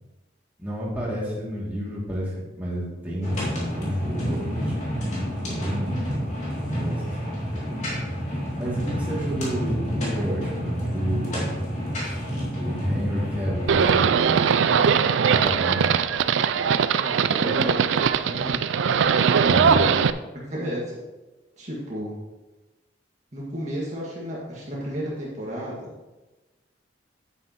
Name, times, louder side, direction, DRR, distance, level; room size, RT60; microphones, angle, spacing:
voice 1, 0.6-4.8 5.4-6.1 6.4-7.3 8.6-11.5 12.6-14.6 15.2-16.0 19.4-19.8, equal, 10° right, -7 dB, 2.6 m, -30 dB
sound 1, 3.2-13.9, equal, 35° left, 2.7 m, -29 dB
Livestock farm animals working animals, 13.7-20.1, right 6 dB, 80° right, 0.4 m, -20 dB
voice 2, 17.0-17.8 18.3-18.6 19.4-20.0 20.3-21.0 21.6-22.1 23.3-25.9, equal, 35° right, -6 dB, 1.9 m, -32 dB
9.7 x 9.1 x 3.1 m, 1.1 s
head